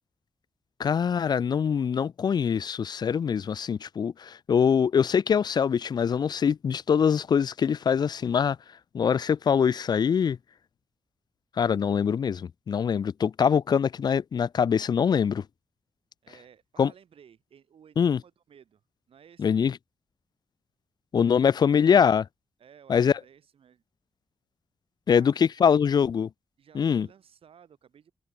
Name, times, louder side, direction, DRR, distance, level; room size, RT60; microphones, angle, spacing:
voice 1, 0.8-8.6 8.9-10.4 11.6-15.4 16.8-16.9 18.0-18.2 19.4-19.7 21.1-22.2 22.9-23.1 25.1-26.3 26.8-27.1, left 7 dB, 45° left, 0.4 m, -23 dB
voice 2, 16.2-18.8 19.1-19.6 22.6-23.8 25.1-25.7 26.6-28.1, right 8 dB, 75° right, 7.9 m, -56 dB
wide cardioid pair, 120°, 10 cm